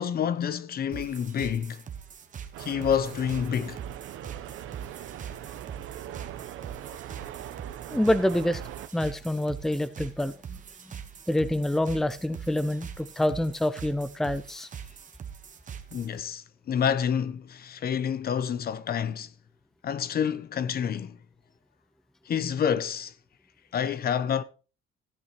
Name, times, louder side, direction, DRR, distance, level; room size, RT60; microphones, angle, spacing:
voice 1, 0.0-1.8 2.6-3.8 15.9-19.3 19.8-21.2 22.3-23.1 23.7-24.4, left 8 dB, 45° left, 0.8 m, -28 dB
sound 1, 0.9-16.2, right 8 dB, 40° right, 1.3 m, -43 dB
sound 2, 2.5-8.9, right 11 dB, 80° right, 0.9 m, -41 dB
voice 2, 7.9-8.6 8.9-10.6 10.9-11.0 11.3-14.7, left 1 dB, ahead, 0.5 m, -27 dB
15.5 x 8.5 x 3.1 m
cardioid pair, 120°, 21 cm